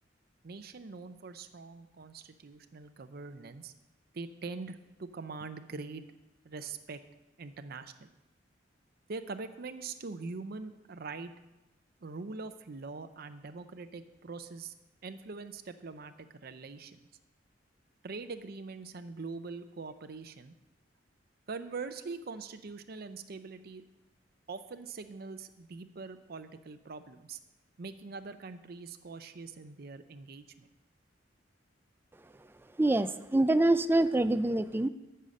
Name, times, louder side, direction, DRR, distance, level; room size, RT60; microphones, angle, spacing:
voice 1, 0.4-3.7 4.1-6.0 6.4-7.0 7.4-8.1 9.1-11.3 12.0-14.7 15.0-17.0 18.0-20.5 21.5-23.8 24.5-27.4 27.8-30.7, right 4 dB, 55° right, 9 dB, 0.6 m, -43 dB
voice 2, 32.8-34.9, right 2 dB, 10° right, 13 dB, 0.3 m, -25 dB
13.5 x 5.6 x 6.4 m, 1.0 s
head